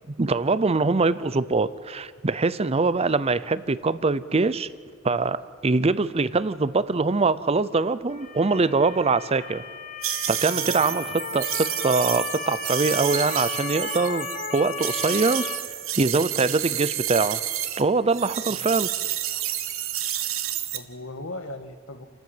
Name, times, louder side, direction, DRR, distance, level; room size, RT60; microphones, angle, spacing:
voice 1, 0.1-4.7 5.0-9.6 10.3-14.3 14.5-15.5 16.0-17.4 17.8-18.9, right 3 dB, 30° right, 16 dB, 0.6 m, -23 dB
Motor vehicle (road) / Siren, 8.1-15.6, left 5 dB, 40° left, 1.9 m, -35 dB
sound 1, 10.0-17.8 18.1-20.8, right 12 dB, 70° right, 1.3 m, -30 dB
voice 2, 10.4-11.4 18.5-18.7 20.7-22.0, left 2 dB, 70° left, 7 dB, 1.6 m, -39 dB
29.5 x 13.0 x 7.8 m, 2.1 s
head